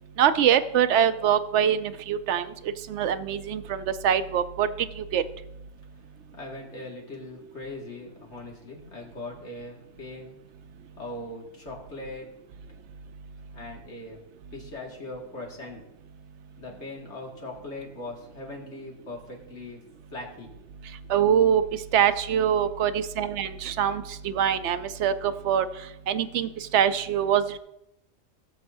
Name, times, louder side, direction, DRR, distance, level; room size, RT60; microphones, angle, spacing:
voice 1, 0.2-2.5 2.9-4.7 5.0-5.2 21.1-21.6 21.9-25.7 26.1-27.6, right 9 dB, 65° right, 12 dB, 0.9 m, -24 dB
voice 2, 6.3-10.4 11.0-12.3 13.5-14.2 14.5-15.8 16.6-19.8 20.1-20.5, left 2 dB, 60° left, -2 dB, 2.4 m, -40 dB
19.0 x 6.8 x 2.7 m, 0.84 s
omnidirectional pair, 1.4 m